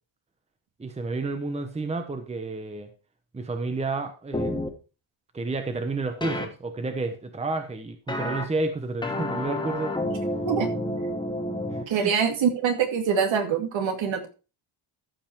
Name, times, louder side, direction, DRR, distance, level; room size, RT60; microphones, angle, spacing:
voice 1, 0.8-2.9 3.3-4.6 5.3-10.0 11.7-12.2, right 3 dB, 15° right, 7 dB, 1.0 m, -30 dB
sound 1, 4.3-4.7 6.2-6.5 8.1-8.4 9.0-11.8, left 1 dB, 10° left, 1.3 m, -29 dB
voice 2, 11.9-14.3, right 7 dB, 65° right, 4 dB, 2.3 m, -24 dB
14.0 x 5.5 x 4.5 m, 0.33 s
cardioid pair, 150°, 49 cm